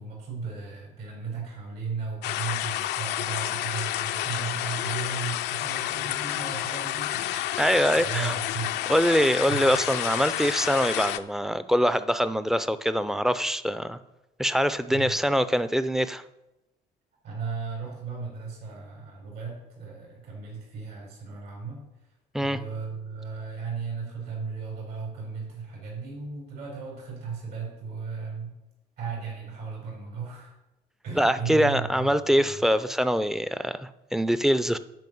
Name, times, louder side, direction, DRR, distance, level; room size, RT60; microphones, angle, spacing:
voice 1, 0.0-7.6 7.9-8.7 9.5-9.8 14.9-15.2 17.2-21.8 22.4-28.6 29.0-30.5 31.0-32.6, right 5 dB, 70° right, -2 dB, 4.3 m, -36 dB
sound 1, 2.2-11.2, left 13 dB, 80° left, 0.5 m, -30 dB
voice 2, 7.6-8.3 8.9-14.0 14.4-16.2 22.3-22.6 31.2-34.8, equal, ahead, 13 dB, 0.5 m, -24 dB
9.3 x 5.3 x 7.7 m, 0.93 s
cardioid pair, 110°, 17 cm